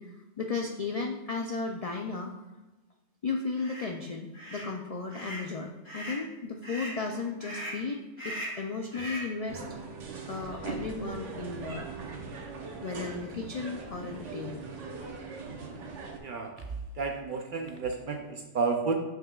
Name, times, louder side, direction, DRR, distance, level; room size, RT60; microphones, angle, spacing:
voice 1, 0.0-2.3 3.2-9.6 10.3-11.9 12.8-14.6, left 4 dB, 70° left, 2 dB, 0.3 m, -35 dB
sound 1, 3.6-3.9 4.3-4.7 5.1-5.5 5.8-6.2 6.6-7.0 7.4-7.8 8.2-8.6 8.9-9.3, equal, 10° right, 1.9 m, -39 dB
sound 2, 9.5-16.2, right 4 dB, 75° right, 1.2 m, -40 dB
voice 2, 16.2-19.0, right 4 dB, 55° right, 3 dB, 0.6 m, -32 dB
7.3 x 5.7 x 2.3 m, 1.1 s
omnidirectional pair, 1.3 m